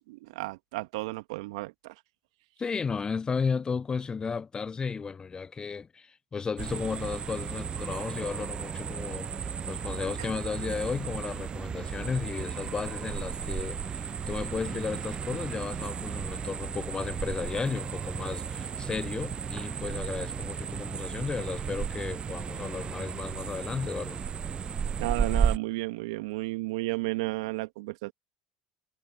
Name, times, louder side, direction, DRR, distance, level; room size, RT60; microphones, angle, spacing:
voice 1, 0.1-1.9 10.2-10.3 25.0-28.1, right 22 dB, 70° right, 2.0 m, -33 dB
voice 2, 2.6-24.2, left 5 dB, 25° left, 0.7 m, -34 dB
sound 1, 6.6-25.6, right 6 dB, 30° right, 0.5 m, -34 dB
figure-of-eight pair, 65°, 3 cm